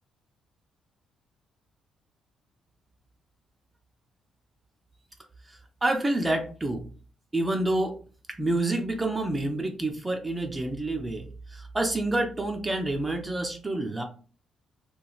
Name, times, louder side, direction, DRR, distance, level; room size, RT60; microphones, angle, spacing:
voice 1, 5.5-6.9 7.3-8.0 8.3-14.0, right 2 dB, 20° right, 4 dB, 0.4 m, -28 dB
3.0 x 2.4 x 2.3 m, 0.40 s
cardioid pair, 90°, 0 cm